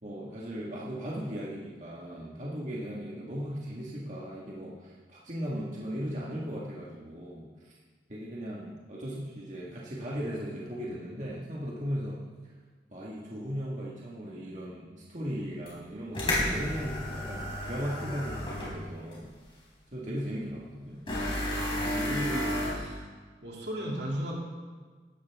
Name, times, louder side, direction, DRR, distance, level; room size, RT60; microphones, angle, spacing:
voice 1, 0.0-7.7 8.1-12.2 12.9-19.3 19.9-21.0, equal, 40° right, -5 dB, 2.0 m, -37 dB
sound 1, 15.7-15.8 16.1-18.8 19.1-19.2 21.1-22.7, left 1 dB, 30° left, 4.3 m, -31 dB
voice 2, 21.1-23.1 23.4-24.4, equal, 70° right, -2 dB, 3.1 m, -36 dB
16.5 x 13.0 x 3.7 m, 1.4 s
head